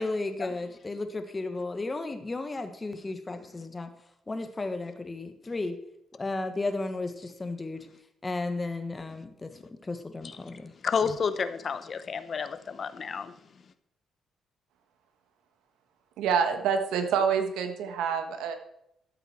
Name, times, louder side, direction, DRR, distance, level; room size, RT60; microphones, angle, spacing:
voice 1, 0.0-3.9 4.3-5.8 6.1-7.9 8.2-9.5 9.8-10.7, left 2 dB, 25° left, 8 dB, 1.4 m, -34 dB
voice 2, 10.8-13.3, left 6 dB, 45° left, 12 dB, 0.8 m, -30 dB
voice 3, 16.2-18.5, right 7 dB, 90° right, 7 dB, 1.4 m, -27 dB
13.5 x 7.9 x 4.4 m, 0.80 s
cardioid pair, 90°, 0 cm